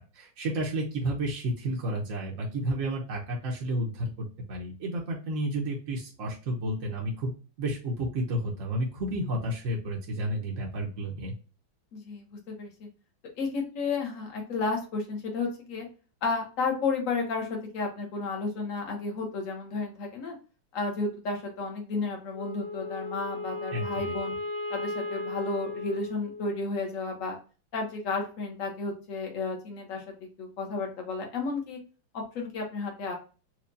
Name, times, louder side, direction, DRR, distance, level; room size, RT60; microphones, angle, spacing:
voice 1, 0.1-7.3 7.6-11.3 23.7-24.1, right 1 dB, 55° right, -3 dB, 1.0 m, -31 dB
voice 2, 11.9-12.9 13.4-15.9 16.2-20.4 20.7-24.3 24.7-27.4 27.7-30.0 30.4-31.8 32.1-33.1, left 3 dB, 50° left, 1 dB, 1.2 m, -32 dB
Wind instrument woodwind instrument, 22.3-26.8, left 2 dB, 10° left, 0.5 m, -36 dB
4.5 x 2.4 x 2.6 m, 0.35 s
omnidirectional pair, 2.2 m